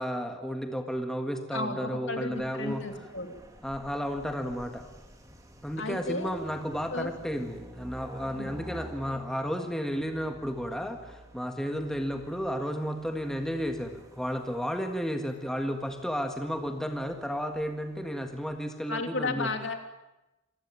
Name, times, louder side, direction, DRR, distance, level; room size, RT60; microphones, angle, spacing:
voice 1, 0.0-2.9 3.6-4.8 5.6-19.5, equal, ahead, 4 dB, 1.6 m, -33 dB
voice 2, 1.5-3.3 5.8-6.3 6.9-7.1 8.4-8.6 18.9-19.8, left 2 dB, 55° left, 6 dB, 2.9 m, -33 dB
sound 1, 2.3-18.6, equal, 15° right, 3.0 m, -50 dB
27.0 x 19.0 x 8.9 m, 1.0 s
head